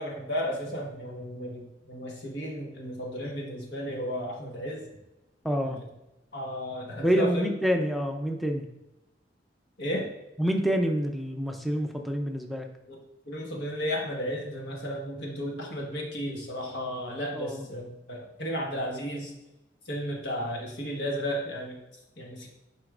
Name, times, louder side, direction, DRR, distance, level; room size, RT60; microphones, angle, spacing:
voice 1, 0.0-4.8 5.6-5.8 6.3-7.5 9.8-10.1 12.9-13.0 13.3-19.3 19.8-21.8 22.2-22.5, equal, 80° left, -1 dB, 1.4 m, -33 dB
voice 2, 5.4-5.8 7.0-8.7 10.4-12.7 17.3-17.7, equal, ahead, 3 dB, 0.5 m, -27 dB
7.9 x 5.1 x 2.5 m, 0.92 s
head